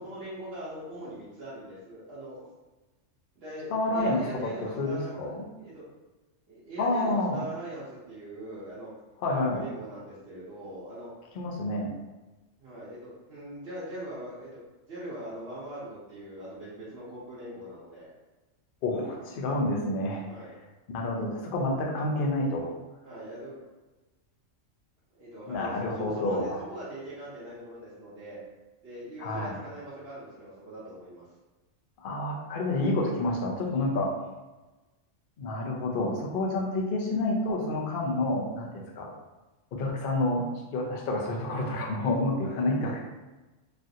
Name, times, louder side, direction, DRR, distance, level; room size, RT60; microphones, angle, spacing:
voice 1, 0.0-2.5 3.4-5.9 6.5-8.9 9.3-11.1 12.6-14.6 14.9-18.1 20.3-20.5 23.0-23.6 25.1-28.4 28.8-31.3 33.9-34.1 42.4-42.9, right 1 dB, 60° right, -11 dB, 1.0 m, -41 dB
voice 2, 3.7-4.5 4.8-5.4 6.8-7.4 9.2-9.6 11.3-11.9 18.8-20.2 20.9-22.7 25.5-26.6 29.2-29.5 32.0-34.1 35.4-39.1 39.7-40.5 40.7-43.0, left 2 dB, 55° left, -1 dB, 0.7 m, -29 dB
3.2 x 2.4 x 2.7 m, 1.1 s
omnidirectional pair, 1.3 m